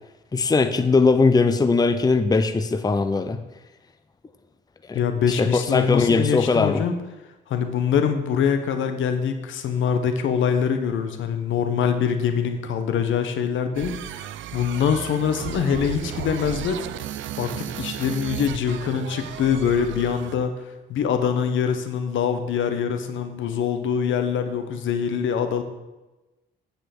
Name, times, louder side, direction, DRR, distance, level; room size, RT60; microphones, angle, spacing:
voice 1, 0.3-3.4 4.9-5.0 5.4-6.8, left 4 dB, 20° left, 10 dB, 0.6 m, -20 dB
voice 2, 4.9-6.9 7.5-14.2 14.5-16.8 17.4-20.6 20.9-25.6, left 7 dB, 75° left, 8 dB, 1.2 m, -24 dB
sound 1, 13.7-20.5, right 12 dB, 75° right, 0.5 m, -34 dB
8.9 x 5.0 x 7.8 m, 1.1 s
cardioid pair, 90°, 20 cm